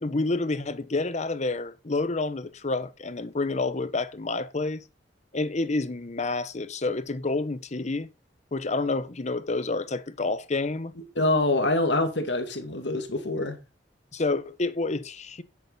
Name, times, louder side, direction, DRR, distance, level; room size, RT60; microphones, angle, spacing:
voice 1, 0.0-4.8 5.3-8.1 8.5-10.9 14.1-15.4, left 3 dB, 40° left, 0.9 m, -29 dB
voice 2, 11.2-13.6, left 2 dB, 75° left, 2.3 m, -25 dB
10.5 x 8.6 x 4.2 m
head